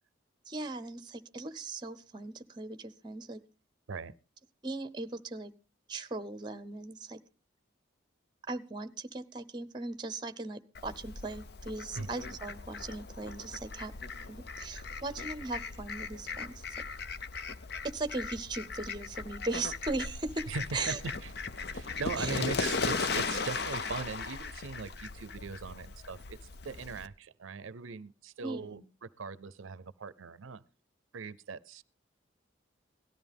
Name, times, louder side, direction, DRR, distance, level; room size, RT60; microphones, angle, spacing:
voice 1, 0.5-3.4 4.6-5.5 5.9-7.2 8.5-13.9 14.2-16.6 17.8-21.0 22.2-22.4 28.4-28.8, right 3 dB, 20° right, 12 dB, 0.8 m, -38 dB
Fowl, 10.7-27.1, left 4 dB, 55° left, 0.7 m, -38 dB
voice 2, 20.5-21.3 21.7-26.4 26.6-30.6 31.1-31.8, right 4 dB, 90° right, 18 dB, 0.6 m, -40 dB
17.5 x 13.0 x 3.5 m, 0.32 s
head